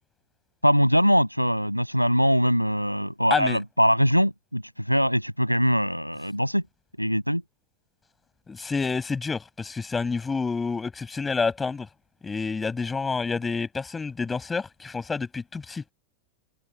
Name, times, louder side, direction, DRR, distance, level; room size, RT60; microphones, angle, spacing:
voice 1, 0.6-6.6 7.0-7.4, equal, 90° right, 7.1 m, -22 dB
voice 2, 8.5-11.9 12.2-15.8, left 4 dB, 15° left, 6.4 m, -28 dB
figure-of-eight pair, 90°, 0 cm